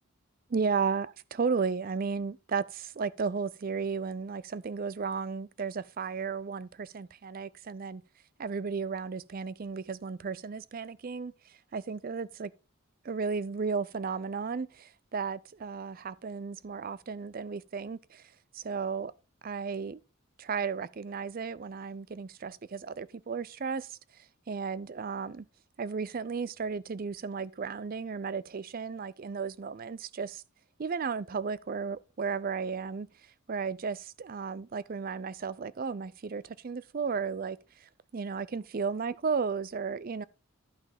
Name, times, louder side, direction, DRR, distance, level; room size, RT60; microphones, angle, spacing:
voice 1, 0.5-8.0 8.4-12.5 13.0-18.2 18.5-19.1 19.4-20.0 20.4-24.0 24.5-25.5 25.8-30.4 30.8-33.1 33.5-40.2, right 5 dB, 45° right, 0.4 m, -34 dB
11.5 x 5.7 x 3.5 m
head